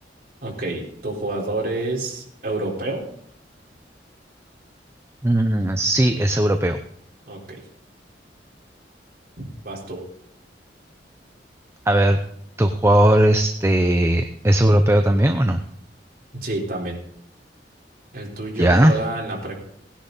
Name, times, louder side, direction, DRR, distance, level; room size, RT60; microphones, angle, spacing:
voice 1, 0.4-3.1 7.3-7.6 9.4-10.1 16.3-17.0 18.1-19.5, right 2 dB, 55° right, -2 dB, 4.3 m, -28 dB
voice 2, 5.2-6.8 11.9-12.2 12.6-15.6 18.6-18.9, right 1 dB, 15° right, 7 dB, 0.6 m, -17 dB
18.0 x 10.0 x 4.1 m, 0.69 s
head